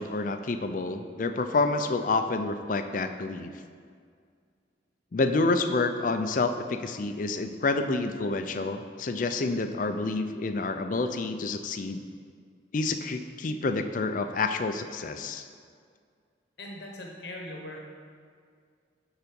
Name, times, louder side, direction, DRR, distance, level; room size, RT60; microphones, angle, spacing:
voice 1, 0.0-3.5 5.1-12.0 12.7-15.5, left 3 dB, 45° left, 8 dB, 0.4 m, -28 dB
voice 2, 16.6-17.8, left 1 dB, 60° left, 0 dB, 1.0 m, -40 dB
9.1 x 4.0 x 5.2 m, 2.1 s
head